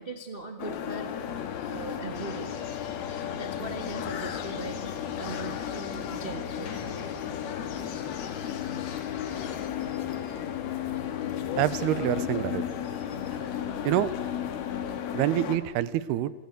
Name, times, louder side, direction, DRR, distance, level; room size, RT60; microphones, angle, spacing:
voice 1, 0.0-1.4 1.7-2.5 3.3-6.7, right 2 dB, 60° right, 5 dB, 0.5 m, -40 dB
sound 1, 0.6-15.6, left 9 dB, 70° left, 3.6 m, -34 dB
sound 2, 1.2-15.0, left 5 dB, 30° left, 2.0 m, -45 dB
sound 3, 2.1-9.7, left 7 dB, 55° left, 2.8 m, -45 dB
voice 2, 11.6-12.6 13.8-14.1 15.1-16.3, right 13 dB, 80° right, 16 dB, 2.9 m, -26 dB
28.0 x 20.0 x 8.2 m, 1.3 s
omnidirectional pair, 4.6 m